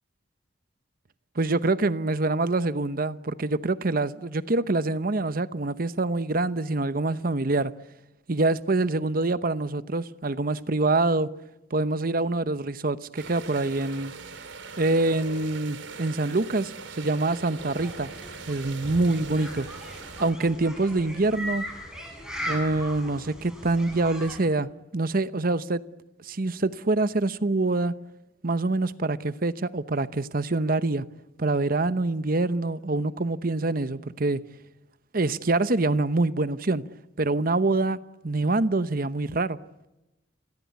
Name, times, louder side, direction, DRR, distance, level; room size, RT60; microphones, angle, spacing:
voice 1, 1.4-7.7 8.3-11.3 11.7-14.1 14.8-18.1 18.5-19.7 20.2-21.7 22.5-25.8 26.2-27.9 28.4-31.1 31.4-34.4 35.1-36.8 37.2-39.6, right 2 dB, 50° right, 0.9 m, -25 dB
sound 1, 13.2-20.3, right 4 dB, 90° right, 3.1 m, -41 dB
sound 2, 17.6-24.4, equal, 5° right, 7.6 m, -38 dB
29.5 x 23.0 x 8.3 m
head